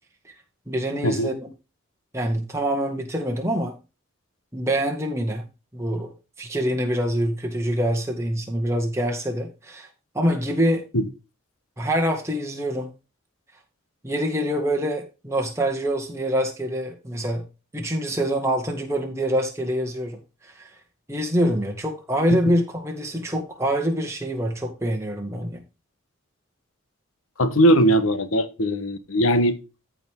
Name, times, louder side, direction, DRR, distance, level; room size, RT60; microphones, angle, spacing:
voice 1, 0.7-1.3 2.1-3.8 4.5-5.5 5.7-6.1 6.4-9.9 10.1-10.9 11.8-12.9 14.0-17.5 17.7-20.2 20.6-20.7 21.1-25.6, equal, 15° right, 2.0 m, -25 dB
voice 2, 27.4-29.6, equal, 90° left, 1.2 m, -19 dB
14.0 x 5.0 x 3.7 m
head